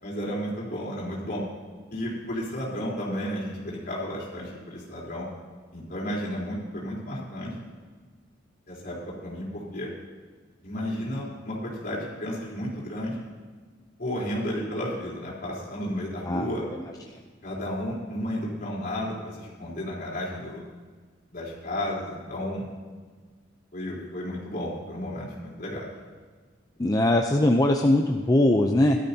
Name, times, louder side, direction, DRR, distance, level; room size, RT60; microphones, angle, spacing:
voice 1, 0.0-1.4 1.9-5.3 5.7-7.5 8.7-9.0 9.2-9.9 10.6-13.2 14.0-16.6 17.4-20.6 21.3-22.7 23.7-25.9, equal, 50° left, -6 dB, 3.8 m, -32 dB
voice 2, 26.8-29.0, left 1 dB, 20° left, 2 dB, 0.5 m, -21 dB
17.0 x 12.0 x 2.8 m, 1.5 s
head